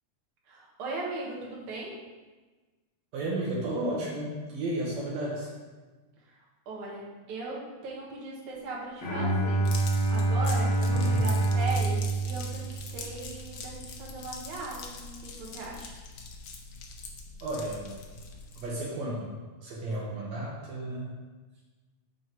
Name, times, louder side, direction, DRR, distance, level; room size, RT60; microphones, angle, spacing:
voice 1, 0.5-2.0 6.2-9.6 10.1-15.9, right 2 dB, 50° right, -3 dB, 2.1 m, -38 dB
voice 2, 3.1-5.5 10.9-11.3 17.4-17.9 18.6-21.1, right 1 dB, 70° right, -4 dB, 2.3 m, -33 dB
Bowed string instrument, 9.0-13.2, right 2 dB, 50° left, 1.4 m, -26 dB
sound 1, 9.6-18.8, left 4 dB, 65° left, 1.5 m, -43 dB
7.8 x 5.5 x 4.5 m, 1.3 s
omnidirectional pair, 3.4 m